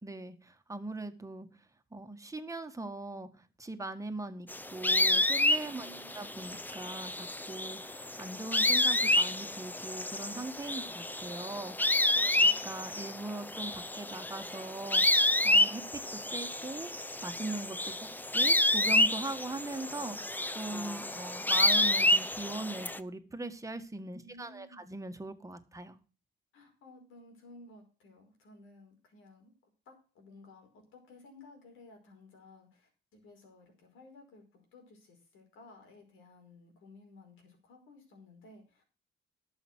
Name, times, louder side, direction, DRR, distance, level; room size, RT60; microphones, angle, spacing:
voice 1, 0.0-1.5 1.9-12.3 12.6-15.8 16.1-16.9 17.2-26.0, right 2 dB, 15° right, 8 dB, 1.7 m, -41 dB
sound 1, 4.5-23.0, left 1 dB, 10° left, 0.7 m, -29 dB
voice 2, 5.8-6.2 12.1-12.6 24.2-24.9 26.5-39.0, left 2 dB, 85° left, 3 dB, 5.1 m, -56 dB
12.0 x 7.2 x 6.4 m, 0.36 s
cardioid pair, 90°, 20 cm